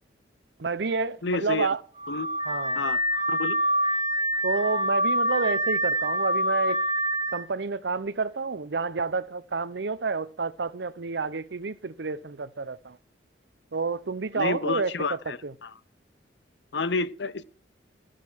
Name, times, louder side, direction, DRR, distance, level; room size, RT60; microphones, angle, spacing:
voice 1, 0.6-1.8 2.5-2.8 4.4-6.8 7.3-13.0 13.7-15.5, right 4 dB, 65° right, 0.7 m, -29 dB
voice 2, 1.2-1.7 2.1-2.3 2.7-3.0 3.3-3.6 14.3-15.7 16.7-17.4, left 3 dB, 70° left, 0.7 m, -29 dB
Car / Alarm, 2.0-7.4, right 1 dB, 25° right, 2.5 m, -26 dB
13.0 x 7.6 x 6.2 m
head